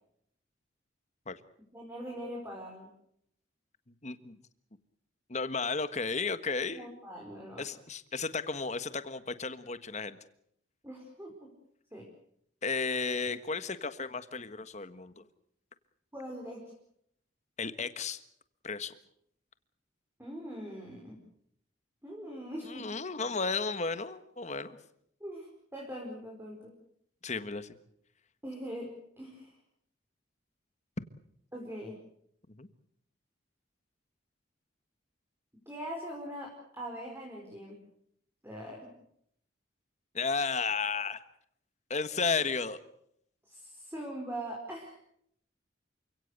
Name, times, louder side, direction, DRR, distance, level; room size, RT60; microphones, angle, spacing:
voice 1, 1.7-2.9 6.7-7.6 10.8-11.5 11.9-12.1 16.1-16.6 20.2-21.2 22.0-22.9 25.2-26.7 28.4-28.9 29.2-29.5 31.5-32.0 35.7-37.8 38.4-38.9 43.5-44.9, equal, 10° right, -1 dB, 4.8 m, -42 dB
voice 2, 4.0-4.4 5.3-6.9 7.6-10.2 12.6-15.2 17.6-18.2 18.6-18.9 22.6-24.8 27.2-27.7 32.6-32.7 40.1-41.2 41.9-42.8, left 4 dB, 35° left, 12 dB, 1.5 m, -33 dB
28.5 x 17.0 x 8.1 m, 0.71 s
head